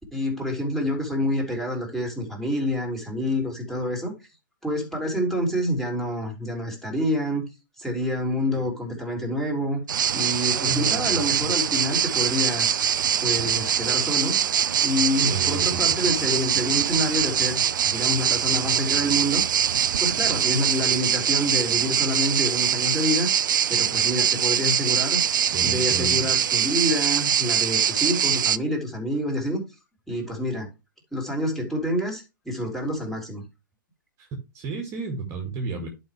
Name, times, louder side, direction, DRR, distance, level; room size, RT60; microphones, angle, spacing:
voice 1, 0.1-4.1 4.6-7.5 7.8-9.8 10.1-12.8 13.2-14.4 14.8-19.4 20.0-23.3 23.7-25.2 25.6-29.6 30.1-30.7 31.1-33.4, equal, ahead, 3.3 m, -27 dB
sound 1, 9.9-28.6, right 9 dB, 65° right, 0.5 m, -23 dB
voice 2, 10.7-11.2 15.2-16.1 25.5-26.4 34.2-34.3 34.5-35.9, right 4 dB, 25° right, 2.0 m, -32 dB
11.0 x 5.3 x 3.3 m
figure-of-eight pair, 125°, 11 cm